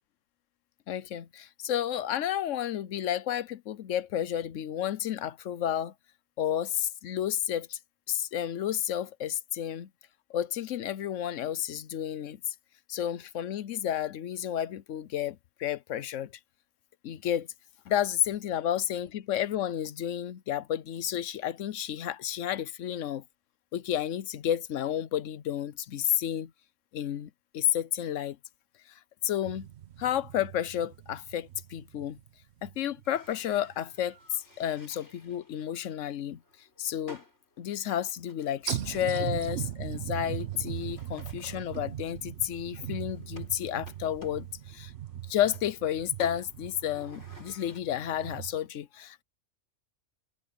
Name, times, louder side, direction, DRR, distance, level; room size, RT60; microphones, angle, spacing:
voice 1, 0.9-5.9 6.4-7.8 8.1-9.9 10.3-12.5 12.9-16.3 17.0-17.5 17.9-23.2 23.7-26.5 26.9-28.4 28.9-29.7 30.0-32.2 32.6-36.4 36.8-37.2 37.6-44.9 45.3-49.2, left 10 dB, 90° left, 1.1 m, -31 dB
sound 1, 29.4-33.2 33.7-33.8 38.7-48.6, right 12 dB, 65° right, 1.0 m, -39 dB
sound 2, 33.0-47.8, left 2 dB, 65° left, 7.5 m, -55 dB
omnidirectional pair, 1.3 m